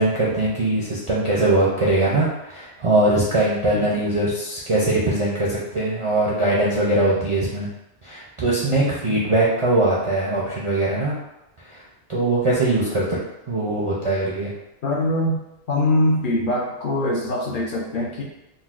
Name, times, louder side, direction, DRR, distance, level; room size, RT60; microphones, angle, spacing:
voice 1, 0.0-7.7 8.0-11.2 12.1-13.0 13.5-14.5, right 2 dB, 50° right, -6 dB, 0.4 m, -21 dB
voice 2, 14.8-15.4 15.7-18.2, left 1 dB, 60° left, -3 dB, 0.6 m, -22 dB
3.9 x 2.1 x 2.4 m, 0.91 s
omnidirectional pair, 1.2 m